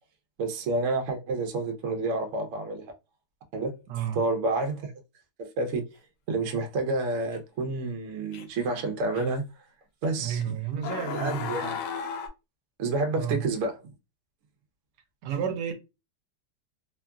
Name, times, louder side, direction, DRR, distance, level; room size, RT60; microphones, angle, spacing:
voice 1, 0.4-2.8 3.5-4.9 5.4-5.8 6.3-9.4 10.0-10.5 11.1-11.8 12.8-13.8, right 3 dB, 60° right, 0.8 m, -29 dB
voice 2, 3.9-4.2 10.2-11.5 13.1-13.4 15.2-15.7, right 8 dB, 80° right, 1.2 m, -31 dB
sound 1, 7.3-7.4 8.3-8.6 9.2-9.3 10.3-10.4 10.8-12.3, left 6 dB, 85° left, 1.2 m, -34 dB
2.9 x 2.4 x 2.2 m
omnidirectional pair, 1.8 m